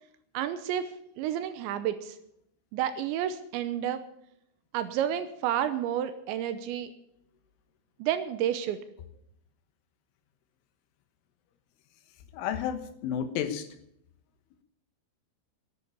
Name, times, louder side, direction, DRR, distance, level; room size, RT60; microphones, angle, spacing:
voice 1, 0.3-0.9 1.2-2.2 2.7-4.0 4.7-6.9 8.0-8.8, right 10 dB, 80° right, 11 dB, 2.9 m, -30 dB
voice 2, 12.3-13.7, left 9 dB, 80° left, 9 dB, 3.7 m, -31 dB
11.0 x 11.0 x 8.5 m, 0.74 s
omnidirectional pair, 5.7 m